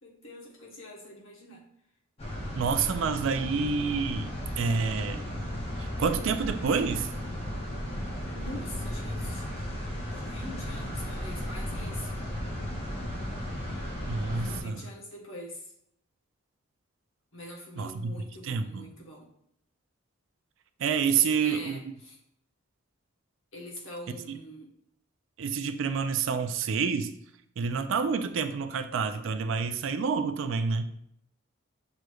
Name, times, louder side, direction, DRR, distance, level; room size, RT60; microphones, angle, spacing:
voice 1, 0.0-1.6 8.2-9.4 10.1-12.2 14.3-15.7 17.3-19.3 21.1-22.2 23.5-24.7, left 1 dB, 65° left, -2 dB, 1.1 m, -44 dB
sound 1, 2.2-14.6, equal, 30° left, 0.8 m, -35 dB
voice 2, 2.6-5.2 5.8-7.1 14.1-14.8 17.8-18.1 18.4-18.7 20.8-21.8 24.3-24.4 25.4-27.1 27.6-31.1, right 5 dB, 60° right, 9 dB, 0.3 m, -28 dB
6.2 x 3.1 x 2.3 m, 0.72 s
head